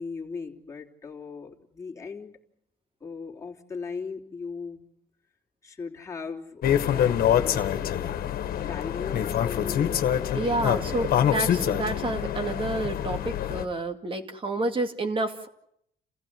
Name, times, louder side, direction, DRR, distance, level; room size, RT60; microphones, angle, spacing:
voice 1, 0.0-2.4 3.0-4.9 5.6-8.1 8.5-10.0 10.7-11.1, left 5 dB, 15° left, -1 dB, 3.2 m, -38 dB
sound 1, 6.6-13.6, left 10 dB, 60° left, 1.8 m, -25 dB
voice 2, 10.3-15.5, right 2 dB, 30° right, 7 dB, 2.3 m, -29 dB
30.0 x 15.5 x 9.5 m, 0.74 s
cardioid pair, 110°, 17 cm